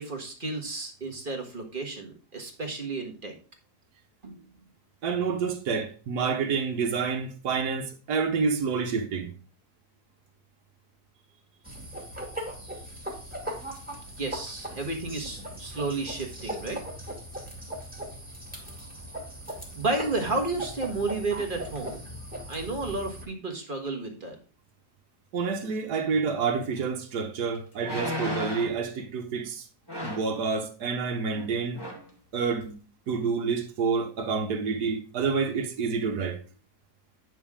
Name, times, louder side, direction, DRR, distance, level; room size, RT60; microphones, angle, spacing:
voice 1, 0.0-3.3 4.2-4.4 14.2-16.8 19.7-22.0 22.5-24.4, right 3 dB, 35° right, 1.6 m, -32 dB
voice 2, 5.0-9.3 25.3-29.6 30.0-31.8 32.3-32.7 33.1-36.4, right 5 dB, 75° right, 1.6 m, -28 dB
sound 1, 11.6-23.2, equal, 5° right, 2.2 m, -39 dB
sound 2, 26.8-26.9 27.8-28.8 29.9-30.3 31.3-31.5 31.7-32.1 32.6-32.7, left 1 dB, 15° left, 1.8 m, -34 dB
9.3 x 6.1 x 3.6 m
omnidirectional pair, 1.7 m